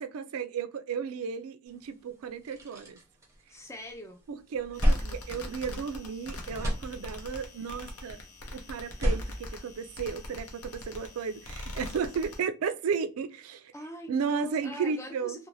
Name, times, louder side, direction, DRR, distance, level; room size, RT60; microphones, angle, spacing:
voice 1, 0.0-3.0 4.3-8.2 8.5-13.7 14.1-15.4, right 6 dB, 75° right, 0.3 m, -34 dB
sound 1, 1.8-1.9 2.3-3.9 4.3-6.2 6.4-7.5 8.8-10.4, equal, 15° right, 0.7 m, -31 dB
voice 2, 3.5-4.2 13.7-15.5, left 1 dB, 15° left, 0.3 m, -42 dB
sound 2, 4.7-12.4, left 1 dB, 75° left, 0.7 m, -43 dB
2.6 x 2.1 x 3.0 m
head